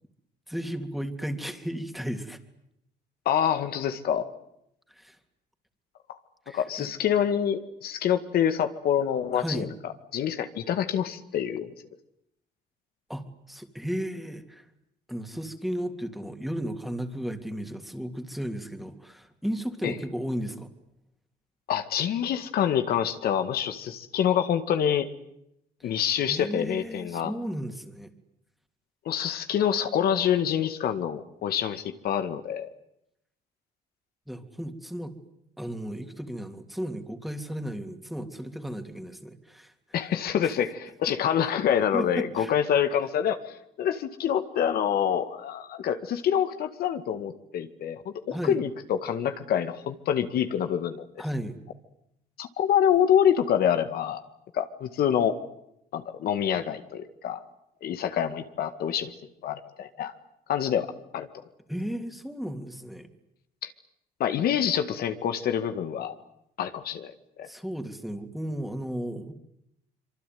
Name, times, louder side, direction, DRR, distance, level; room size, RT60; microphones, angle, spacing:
voice 1, 0.5-2.4 4.9-5.2 6.5-6.9 9.3-9.7 13.1-14.6 15.1-20.7 25.8-28.1 34.3-35.2 35.6-39.7 40.4-40.5 41.9-42.5 48.3-48.6 51.2-51.6 61.7-63.1 67.5-69.3, equal, ahead, 7 dB, 3.2 m, -34 dB
voice 2, 3.3-4.3 6.1-6.2 6.5-11.7 19.8-19.9 21.7-25.1 25.8-27.3 29.1-32.7 39.9-51.1 52.4-54.2 54.5-55.4 55.9-57.4 57.8-59.1 59.4-60.1 60.5-61.3 63.6-63.7 64.2-66.1 66.6-67.1 67.4-67.5, left 9 dB, 65° left, 8 dB, 2.0 m, -26 dB
25.5 x 24.0 x 9.4 m, 0.79 s
cardioid pair, 110°, 17 cm